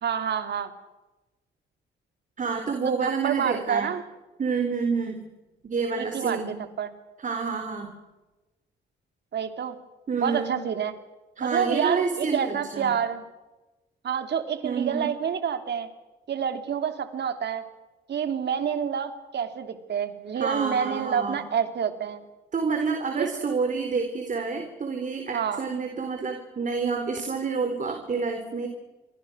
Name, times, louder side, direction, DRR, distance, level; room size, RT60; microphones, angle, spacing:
voice 1, 0.0-0.7 2.8-4.0 6.0-6.9 9.3-9.8 10.2-10.9 11.4-13.2 14.0-15.9 16.3-17.6 18.1-22.2 23.2-23.3 25.3-25.6, right 7 dB, 60° right, 8 dB, 3.2 m, -28 dB
voice 2, 2.4-3.9 4.4-5.2 5.6-6.5 7.2-7.9 10.1-10.5 11.4-12.9 14.6-15.1 20.3-21.4 22.5-28.7, right 5 dB, 40° right, 5 dB, 4.1 m, -28 dB
28.5 x 24.0 x 6.4 m, 1.1 s
cardioid pair, 90°, 20 cm